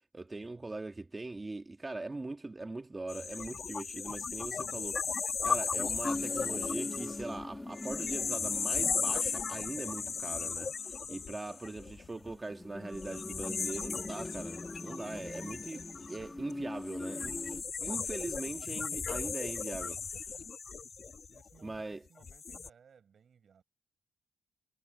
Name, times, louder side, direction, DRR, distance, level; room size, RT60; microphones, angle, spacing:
voice 1, 0.1-17.4 17.8-20.2 21.6-22.0, right 2 dB, 15° right, 1.6 m, -41 dB
sound 1, 3.1-12.3 12.9-21.7 22.2-22.7, left 5 dB, 40° left, 1.6 m, -36 dB
sound 2, 6.0-17.6, left 2 dB, 15° left, 1.6 m, -43 dB
voice 2, 21.3-23.6, right 7 dB, 50° right, 7.1 m, -62 dB
wide cardioid pair, 160°, 0 cm